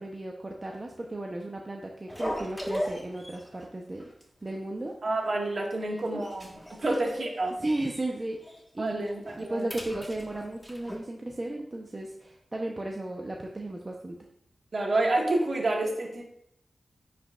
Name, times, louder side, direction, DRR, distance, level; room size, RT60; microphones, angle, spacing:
voice 1, 0.0-4.1 4.4-4.9 5.7-6.2 6.8-7.0 7.6-14.2, right 1 dB, 35° right, 0 dB, 0.8 m, -35 dB
sound 1, 2.1-3.7 4.0-4.2 4.5-4.6 5.2-5.7 6.0-8.1 8.4-8.6 9.0-11.0, equal, 5° left, 1.5 m, -38 dB
voice 2, 5.0-7.6 8.8-9.7 14.7-16.2, right 2 dB, 60° right, 0 dB, 1.7 m, -29 dB
9.5 x 5.1 x 2.5 m, 0.75 s
cardioid pair, 45°, 0 cm